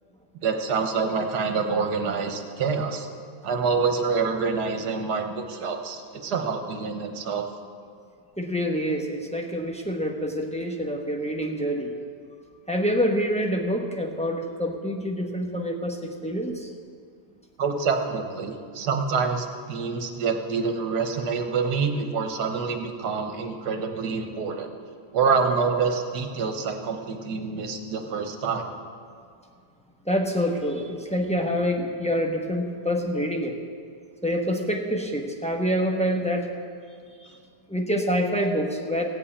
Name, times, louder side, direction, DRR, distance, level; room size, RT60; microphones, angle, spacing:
voice 1, 0.4-3.1 3.4-7.5 17.6-24.7 25.1-28.7, right 5 dB, 70° right, 5 dB, 1.6 m, -26 dB
voice 2, 8.4-11.9 12.7-16.7 30.1-33.5 34.2-36.5 37.2-37.3 37.7-39.0, equal, 5° left, 1 dB, 0.6 m, -26 dB
16.5 x 5.6 x 8.4 m, 2.3 s
omnidirectional pair, 1.8 m